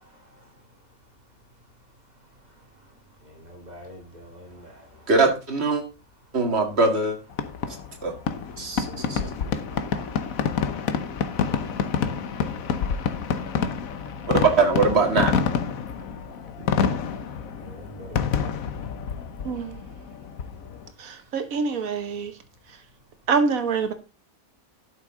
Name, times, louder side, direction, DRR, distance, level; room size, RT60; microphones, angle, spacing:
voice 1, 3.2-5.1 8.8-9.3 9.6-10.1 10.7-12.0 12.5-12.9 13.2-13.7 17.6-18.2, equal, 30° right, 2.4 m, -46 dB
voice 2, 5.1-5.8 6.3-7.2 8.0-8.1 8.6-9.2 14.3-15.4, right 3 dB, 50° right, 2.2 m, -21 dB
Fireworks, 7.3-20.9, left 7 dB, 80° left, 1.3 m, -28 dB
voice 3, 19.4-19.8 21.0-22.3 23.3-23.9, right 5 dB, 75° right, 1.6 m, -25 dB
12.0 x 6.5 x 3.8 m
omnidirectional pair, 1.5 m